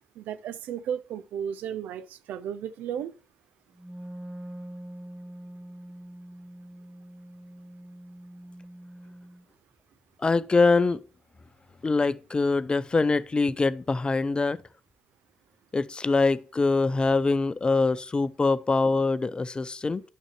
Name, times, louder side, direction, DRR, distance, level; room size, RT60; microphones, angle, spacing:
voice 1, 0.0-3.1, right 9 dB, 70° right, 0.5 m, -34 dB
Wind instrument woodwind instrument, 3.7-9.4, right 1 dB, 20° right, 1.1 m, -44 dB
voice 2, 10.2-11.0 11.8-14.6 15.7-20.0, left 3 dB, 30° left, 0.6 m, -24 dB
10.5 x 6.2 x 3.1 m
hypercardioid pair, 40°, 3 cm